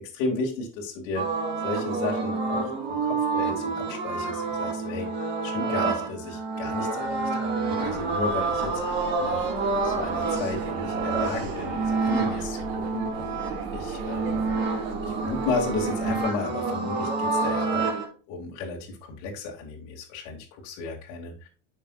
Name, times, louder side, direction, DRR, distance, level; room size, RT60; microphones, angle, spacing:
voice 1, 0.1-1.2 1.6-5.1 5.4-9.5 9.8-13.4 13.7-14.4 15.0-21.5, left 3 dB, 70° left, -2 dB, 2.6 m, -34 dB
sound 1, 1.2-18.0, right 4 dB, 30° right, 2.9 m, -28 dB
sound 2, 7.8-16.2, right 4 dB, 75° right, 2.0 m, -36 dB
10.5 x 6.5 x 2.5 m, 0.36 s
cardioid pair, 170°, 38 cm